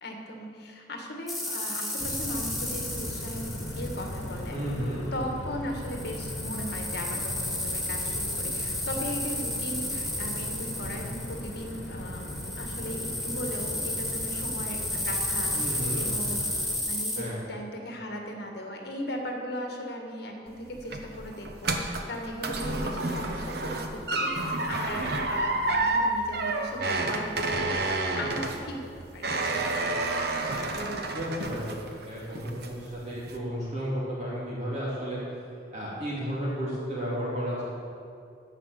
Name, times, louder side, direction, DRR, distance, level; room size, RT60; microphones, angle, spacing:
voice 1, 0.0-4.6 5.1-16.4 16.9-29.3, equal, 55° left, 2 dB, 1.6 m, -38 dB
sound 1, 1.3-4.6 5.8-17.2, left 1 dB, ahead, 1.9 m, -33 dB
sound 2, 2.0-16.8, left 1 dB, 75° left, 1.3 m, -38 dB
voice 2, 4.5-5.0 15.6-16.0 17.2-17.4 30.5-31.6 32.1-35.2 35.7-37.6, equal, 35° right, -7 dB, 2.6 m, -33 dB
sound 3, 20.5-32.0 32.4-32.9 33.3-33.4, right 2 dB, 55° right, 1.0 m, -29 dB
13.5 x 5.6 x 8.5 m, 2.4 s
head